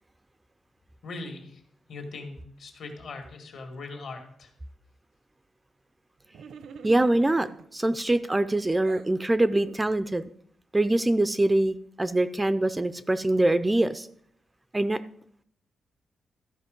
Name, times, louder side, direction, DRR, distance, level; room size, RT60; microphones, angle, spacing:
voice 1, 1.0-1.6 1.9-4.5, left 3 dB, 65° left, 4 dB, 2.0 m, -40 dB
sound 1, 6.3-7.7 8.3-9.1, right 6 dB, 75° right, 0.6 m, -45 dB
voice 2, 6.8-10.3 10.7-14.1 14.7-15.0, right 1 dB, 10° right, 13 dB, 0.3 m, -24 dB
13.5 x 5.1 x 5.2 m, 0.66 s
wide cardioid pair, 155°, 0 cm